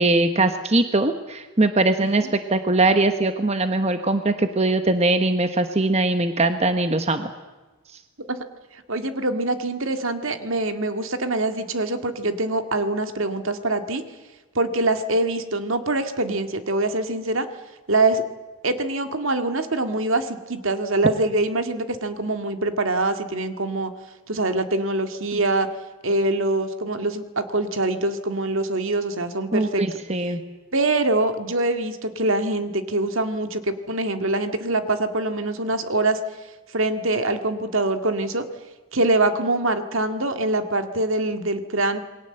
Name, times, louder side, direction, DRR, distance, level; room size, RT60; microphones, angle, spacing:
voice 1, 0.0-7.3 29.5-30.4, right 2 dB, 30° right, 8 dB, 1.1 m, -21 dB
voice 2, 2.0-2.3 8.2-8.4 8.7-14.0 14.6-17.5 17.9-18.2 18.6-23.9 24.3-25.7 26.0-29.8 30.7-36.2 36.7-38.5 38.9-42.0, right 2 dB, 65° right, 8 dB, 2.0 m, -24 dB
28.0 x 21.5 x 7.9 m, 1.2 s
head